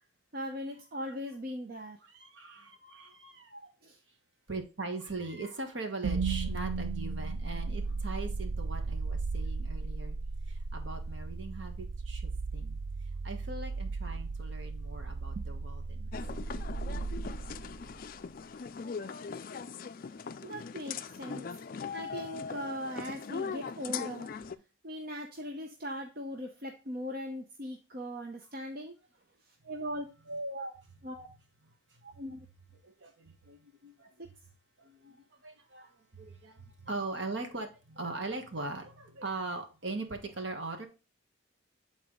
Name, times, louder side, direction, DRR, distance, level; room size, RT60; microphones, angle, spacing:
voice 1, 0.3-2.0 3.8-4.0 15.4-15.5 20.4-21.5 21.9-24.3 24.8-28.9 29.6-30.7 31.0-31.3 32.0-32.5 34.2-34.3, equal, 50° right, 0.7 m, -39 dB
voice 2, 2.0-3.7 4.5-10.2 10.5-12.8 13.2-16.1 31.9-32.0 32.8-34.2 34.8-40.9, right 3 dB, 65° right, 1.3 m, -41 dB
sound 1, 6.0-18.1, right 4 dB, 90° right, 0.4 m, -36 dB
sound 2, 16.1-24.5, left 5 dB, 45° left, 0.3 m, -40 dB
8.0 x 4.0 x 3.7 m
head